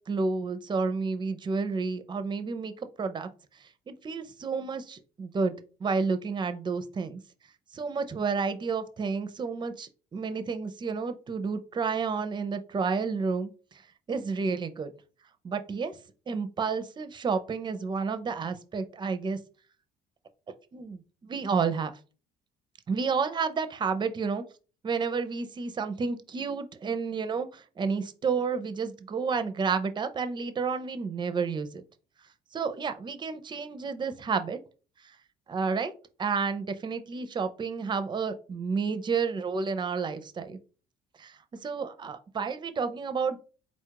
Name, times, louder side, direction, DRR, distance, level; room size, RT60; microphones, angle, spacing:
voice 1, 0.1-2.7 3.0-3.3 3.9-5.5 5.8-7.2 7.7-13.5 14.1-14.9 15.4-16.0 16.3-19.4 20.7-21.9 22.9-24.4 24.8-31.8 32.5-34.6 35.5-35.9 36.2-40.6 41.2-43.4, right 5 dB, 25° right, 10 dB, 0.5 m, -30 dB
4.1 x 2.4 x 4.6 m, 0.36 s
cardioid pair, 110°, 17 cm